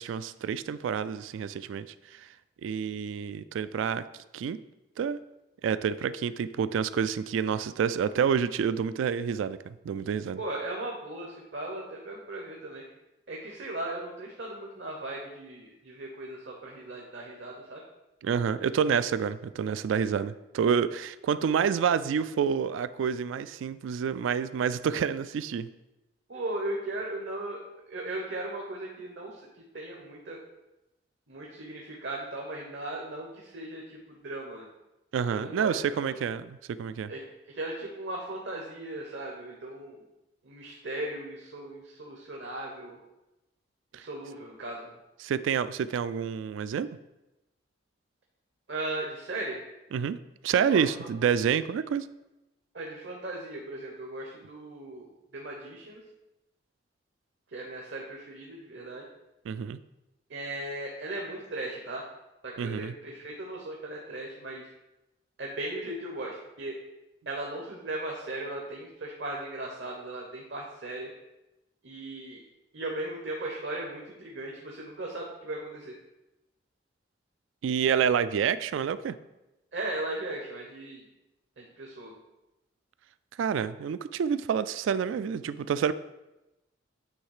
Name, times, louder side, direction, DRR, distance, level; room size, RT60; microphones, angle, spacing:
voice 1, 0.0-2.3 2.6-4.0 4.3-4.6 5.0-5.2 5.6-10.4 18.2-25.7 35.1-37.1 43.9-44.0 45.2-47.0 49.9-50.2 50.4-52.1 59.5-59.8 62.6-62.9 77.6-79.2 83.4-85.9, right 7 dB, 85° right, 15 dB, 0.3 m, -28 dB
voice 2, 10.4-12.8 13.3-17.8 26.3-29.4 29.7-30.4 31.3-34.0 34.2-34.7 35.3-35.7 36.0-36.1 37.1-37.2 37.5-40.0 40.4-43.0 43.9-44.9 48.7-49.6 50.7-50.8 52.7-56.0 57.5-59.0 60.3-62.0 62.4-64.7 65.4-66.8 67.3-71.1 71.8-72.4 72.7-75.9 79.7-81.0 81.6-82.1, right 2 dB, 70° right, -1 dB, 0.9 m, -37 dB
9.1 x 3.2 x 4.8 m, 0.97 s
head